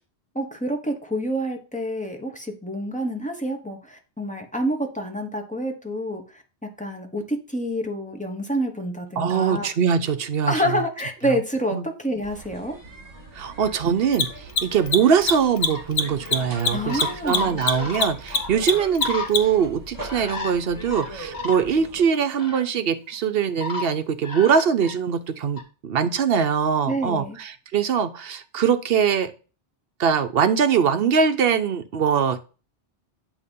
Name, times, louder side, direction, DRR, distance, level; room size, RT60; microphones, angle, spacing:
voice 1, 0.3-9.7 10.5-12.7 16.7-17.6 26.9-27.4, equal, 5° left, 3 dB, 1.1 m, -28 dB
voice 2, 9.2-10.8 11.7-11.9 13.3-29.3 30.0-32.4, right 7 dB, 65° right, 11 dB, 0.9 m, -22 dB
Mechanisms, 11.0-11.1 14.0-19.7, left 4 dB, 70° left, 1.1 m, -23 dB
sound 1, 12.2-22.0, right 2 dB, 35° right, 2.0 m, -40 dB
sound 2, 14.9-15.1 15.5-15.8 16.4-16.6 16.9-19.3 20.0-20.5 20.9-21.6 22.0-22.1 22.4-22.6 23.6-23.9 24.2-25.0 25.6-25.7, left 3 dB, 40° left, 1.5 m, -32 dB
8.7 x 3.0 x 5.3 m, 0.35 s
omnidirectional pair, 1.1 m